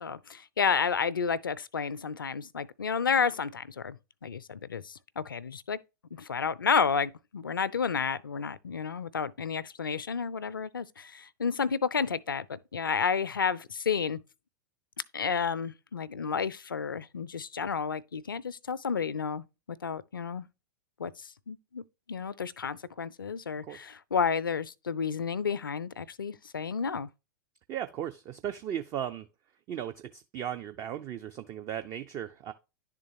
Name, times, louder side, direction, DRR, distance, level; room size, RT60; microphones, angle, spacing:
voice 1, 0.0-5.8 6.1-14.2 15.1-20.5 21.0-21.8 22.1-27.1, left 6 dB, 80° left, 0.4 m, -31 dB
voice 2, 27.7-29.3 29.7-32.5, right 10 dB, 30° right, 0.4 m, -36 dB
10.5 x 3.7 x 2.7 m
figure-of-eight pair, 95°, 11 cm